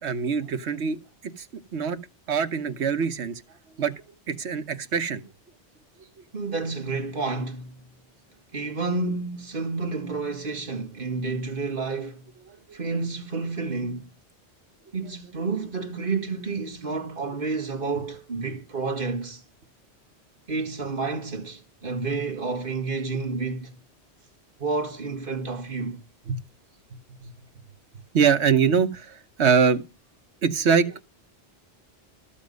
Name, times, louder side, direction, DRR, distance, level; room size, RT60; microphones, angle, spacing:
voice 1, 0.0-1.0 1.4-1.5 1.7-2.0 2.3-3.4 3.8-3.9 4.3-5.2 12.7-12.8 26.3-26.4 27.2-27.3 28.1-29.8 30.4-31.0, right 6 dB, 80° right, 1.3 m, -23 dB
voice 2, 6.3-7.8 8.5-12.2 12.7-14.1 14.9-19.4 20.5-23.8 24.6-26.0, right 4 dB, 50° right, 1.9 m, -30 dB
14.0 x 7.3 x 5.2 m
omnidirectional pair, 1.1 m